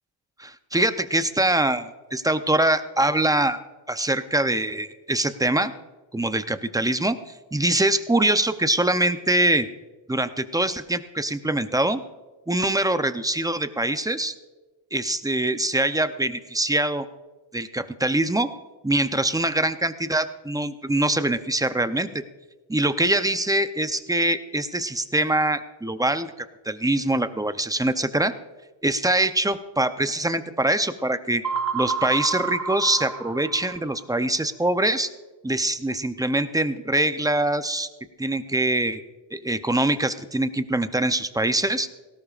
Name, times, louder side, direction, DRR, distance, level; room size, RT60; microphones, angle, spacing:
voice 1, 0.4-3.6 3.9-5.7 6.1-7.2 7.5-9.7 10.1-12.0 12.5-14.3 14.9-17.0 17.5-18.5 18.8-22.1 22.7-26.3 26.6-28.3 28.8-31.4 31.7-35.1 35.4-37.9 38.2-39.0 39.3-41.9, right 1 dB, 10° right, 10 dB, 0.6 m, -23 dB
sound 1, 31.4-34.0, right 5 dB, 40° right, 1.4 m, -29 dB
18.5 x 17.0 x 2.5 m, 1.3 s
cardioid pair, 110°, 47 cm